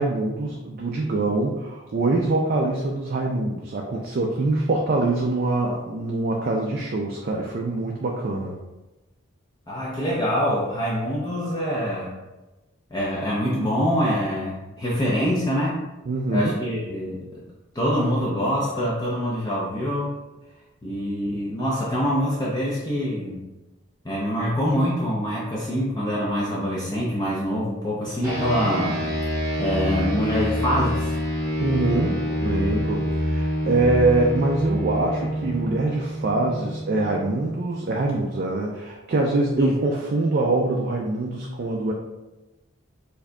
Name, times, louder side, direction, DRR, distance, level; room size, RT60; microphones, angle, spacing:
voice 1, 0.0-8.6 16.1-16.6 31.6-41.9, right 2 dB, 45° right, 0 dB, 0.4 m, -24 dB
voice 2, 9.7-12.1 12.9-15.8 16.3-17.4 17.7-20.1 20.8-23.4 24.0-29.0 29.6-31.2 33.6-33.8 39.6-39.7, equal, 20° left, -6 dB, 0.5 m, -25 dB
sound 1, 28.2-38.0, equal, 15° right, 0.8 m, -27 dB
4.6 x 2.7 x 2.2 m, 1.0 s
head